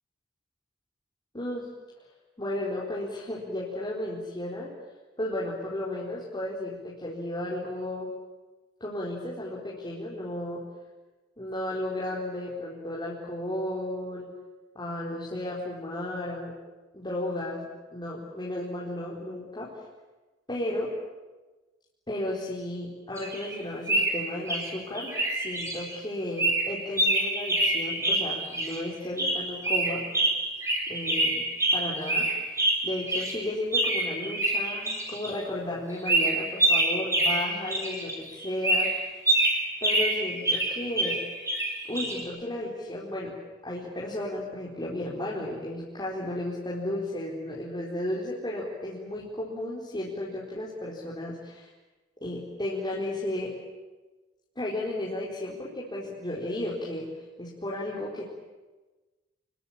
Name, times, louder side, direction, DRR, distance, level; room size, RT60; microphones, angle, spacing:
voice 1, 1.3-1.7 2.4-4.7 5.2-8.1 8.8-10.6 11.4-14.3 14.7-16.5 16.9-17.7 17.9-19.7 20.5-20.9 22.1-30.1 30.9-31.4 31.7-32.6 32.8-38.9 39.8-41.2 41.9-43.3 43.6-51.7 52.2-53.5 54.6-57.1 57.4-58.2, left 1 dB, 20° left, -5 dB, 4.3 m, -34 dB
sound 1, 23.2-23.6 23.9-24.7 25.0-26.0 26.4-28.8 29.2-33.4 33.7-35.3 36.1-38.1 38.4-42.2, right 2 dB, 15° right, 5.5 m, -26 dB
28.5 x 22.0 x 8.8 m, 1.2 s
head